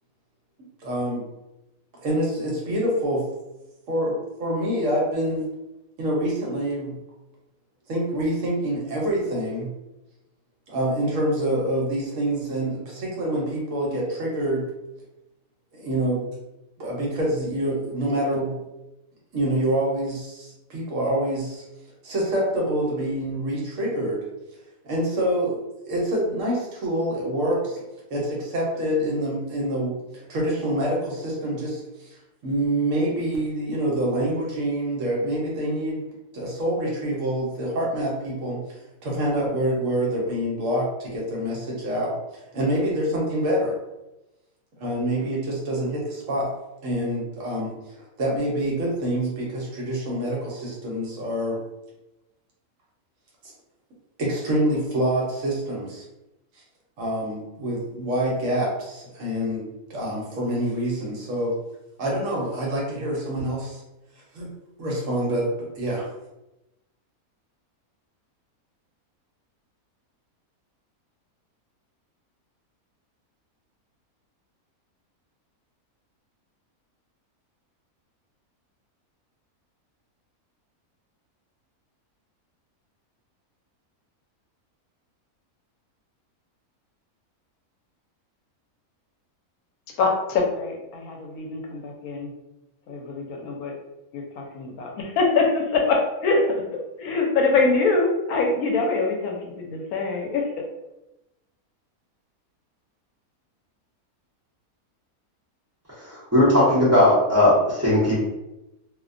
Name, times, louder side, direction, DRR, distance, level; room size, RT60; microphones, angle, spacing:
voice 1, 0.8-1.2 2.0-3.3 3.9-5.5 6.0-7.0 7.9-9.7 10.7-14.6 15.7-16.3 16.8-18.6 19.3-21.6 22.0-24.2 24.8-25.6 25.9-27.8 28.1-29.9 30.3-32.1 32.4-36.0 36.3-38.6 39.0-42.2 42.5-43.8 44.8-46.5 46.8-47.7 48.2-51.6 54.2-56.0 57.0-61.6 62.0-63.8 64.3-64.5 64.8-66.1, right 1 dB, 65° right, -3 dB, 1.0 m, -26 dB
voice 2, 90.0-92.3 92.9-93.7 94.1-96.4 97.0-100.7, left 3 dB, 80° left, 1 dB, 1.0 m, -24 dB
voice 3, 106.0-108.1, left 1 dB, 15° right, -10 dB, 0.6 m, -18 dB
2.5 x 2.1 x 2.4 m, 0.96 s
omnidirectional pair, 1.5 m